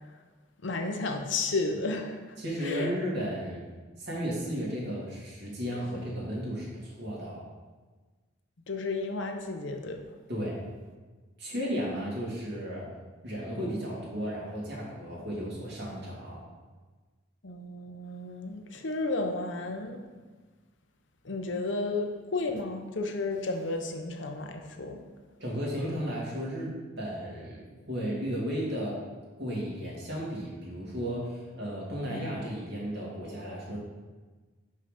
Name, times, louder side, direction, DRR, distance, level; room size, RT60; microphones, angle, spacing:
voice 1, 0.6-2.9 8.7-10.0 17.4-20.0 21.2-25.0 32.1-32.2 33.4-33.6, left 3 dB, 70° left, 4 dB, 0.8 m, -33 dB
voice 2, 2.4-3.6 4.0-7.4 10.3-10.6 11.4-12.9 13.2-16.4 25.4-29.0 29.4-33.8, equal, 60° right, -5 dB, 2.3 m, -34 dB
5.7 x 5.5 x 5.0 m, 1.3 s
head